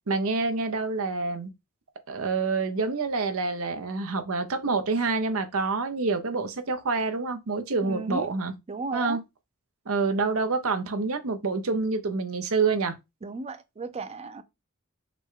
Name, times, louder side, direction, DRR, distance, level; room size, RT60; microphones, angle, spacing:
voice 1, 0.1-1.5 2.1-8.5 8.9-9.2 9.9-13.0, right 4 dB, 75° right, 0.7 m, -27 dB
voice 2, 7.8-8.3 8.7-9.2 13.2-14.4, right 3 dB, 30° right, 0.5 m, -34 dB
5.8 x 2.2 x 3.7 m
head